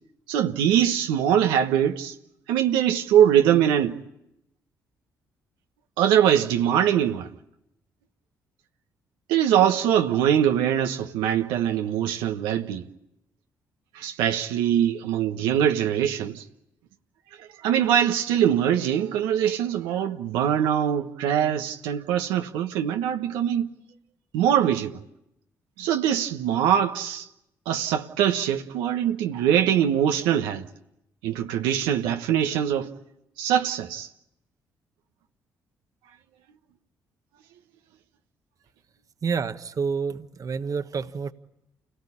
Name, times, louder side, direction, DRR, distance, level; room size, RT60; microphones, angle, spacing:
voice 1, 0.3-2.1 2.5-4.0 6.0-7.3 9.3-12.9 13.9-16.4 17.4-23.7 24.3-25.0 25.8-27.3 27.7-30.7 31.2-32.9 33.4-34.1, right 9 dB, 90° right, 1.2 m, -22 dB
voice 2, 39.2-41.3, right 5 dB, 50° right, 1.3 m, -28 dB
28.5 x 18.0 x 10.0 m
supercardioid pair, 60°, 8 cm